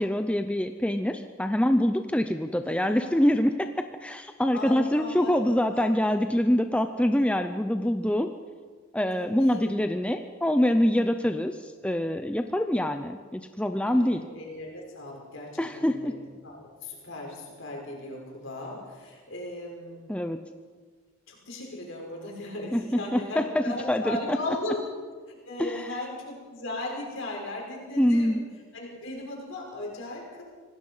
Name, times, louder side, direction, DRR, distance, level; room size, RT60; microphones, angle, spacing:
voice 1, 0.0-8.3 8.9-14.2 15.6-16.1 20.1-20.4 22.7-24.4 25.6-25.9 28.0-28.4, equal, 5° left, 7 dB, 0.6 m, -25 dB
voice 2, 2.6-3.3 4.5-5.3 5.7-5.9 9.1-9.7 13.8-16.1 16.4-20.0 21.3-24.9 25.3-28.4 28.7-30.4, left 2 dB, 65° left, -1 dB, 6.1 m, -37 dB
26.0 x 18.0 x 5.7 m, 1.5 s
head